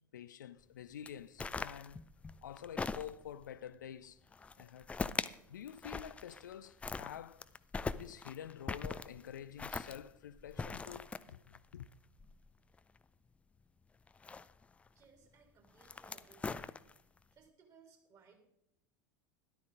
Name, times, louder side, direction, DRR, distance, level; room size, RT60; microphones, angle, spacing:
voice 1, 0.0-2.0 2.4-4.2 4.6-4.9 5.5-7.5 8.0-11.4 11.7-11.9, left 9 dB, 65° left, 0.5 m, -48 dB
sound 1, 1.1-3.4 4.3-5.4 5.7-6.5 6.8-13.0 14.1-14.9 15.6-17.2, left 4 dB, 10° left, 0.4 m, -41 dB
voice 2, 14.9-16.7 17.3-18.4, right 5 dB, 30° right, 3.3 m, -64 dB
13.0 x 12.5 x 3.6 m
figure-of-eight pair, 80°, 11 cm